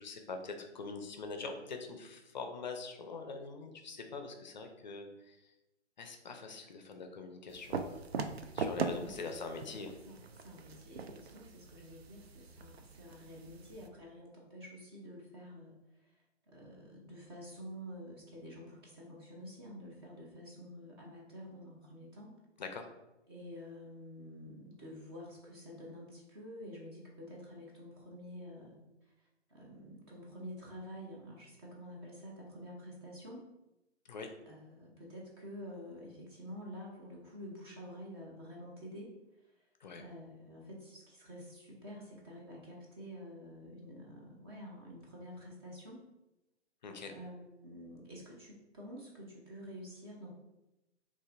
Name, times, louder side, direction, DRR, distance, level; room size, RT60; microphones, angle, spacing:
voice 1, 0.0-5.5 6.0-8.0 8.5-10.0 22.6-22.9 34.1-34.3 39.8-40.0 46.8-47.1, left 4 dB, 40° left, 5 dB, 0.5 m, -43 dB
sound 1, 7.5-13.9, right 5 dB, 60° right, 0.5 m, -41 dB
voice 2, 8.8-9.3 9.8-22.4 23.3-33.5 34.5-39.7 40.0-46.0 47.0-50.3, equal, 20° right, -2 dB, 0.6 m, -49 dB
6.5 x 2.5 x 2.5 m, 0.96 s
figure-of-eight pair, 135°, 35 cm